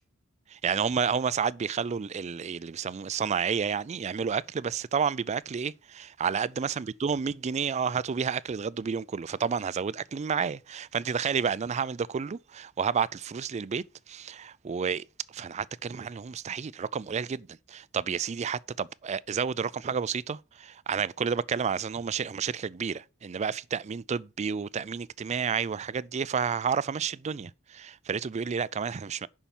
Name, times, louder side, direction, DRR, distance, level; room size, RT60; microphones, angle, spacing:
voice 1, 0.5-15.0 15.3-29.3, right 6 dB, 35° right, 0.4 m, -30 dB
7.1 x 5.7 x 7.1 m
head